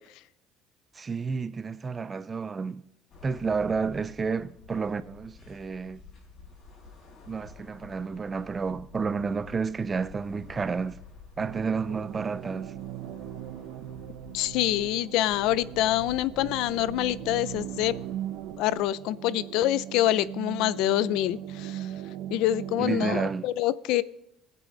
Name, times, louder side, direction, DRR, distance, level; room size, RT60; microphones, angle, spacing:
voice 1, 1.0-2.8 3.2-6.0 7.3-11.0 11.4-12.7 22.8-23.5, right 5 dB, 20° right, 0.3 m, -30 dB
sound 1, 3.1-18.8, left 4 dB, 40° left, 4.7 m, -51 dB
sound 2, 11.4-23.3, right 12 dB, 80° right, 0.8 m, -39 dB
voice 2, 14.3-17.9 18.6-21.9 22.3-24.0, left 14 dB, 70° left, 0.4 m, -26 dB
20.5 x 8.4 x 3.9 m
cardioid pair, 175°, 0 cm